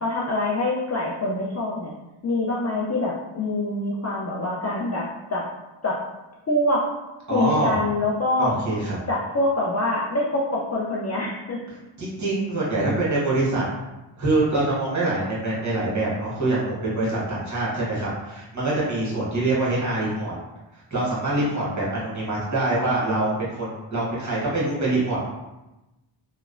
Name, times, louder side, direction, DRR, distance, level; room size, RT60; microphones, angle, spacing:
voice 1, 0.0-1.9 2.2-5.5 5.8-6.0 6.5-6.9 7.3-8.5 9.1-11.6, left 2 dB, 35° left, -5 dB, 0.4 m, -25 dB
voice 2, 7.3-7.7 8.4-9.0 12.0-13.7 14.2-20.3 20.7-25.2, right 2 dB, 35° right, -6 dB, 1.1 m, -24 dB
3.0 x 2.0 x 2.4 m, 1.0 s
cardioid pair, 75°, 49 cm